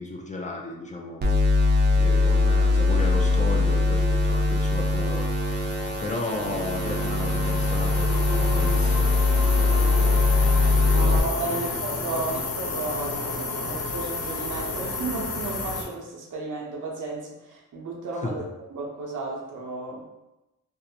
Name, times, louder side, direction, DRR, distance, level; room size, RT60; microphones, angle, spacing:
voice 1, 0.0-1.6 1.9-10.1 10.4-11.0 11.5-11.8 18.2-18.3, left 2 dB, 25° left, 0 dB, 0.4 m, -34 dB
sound 1, 1.2-11.2, left 3 dB, 35° right, 0.5 m, -21 dB
sound 2, 3.6-15.8, left 3 dB, 80° left, 0.6 m, -32 dB
voice 2, 10.9-18.4 18.7-20.1, right 3 dB, 75° right, -3 dB, 0.7 m, -33 dB
2.6 x 2.1 x 2.7 m, 0.95 s
cardioid pair, 70°, 31 cm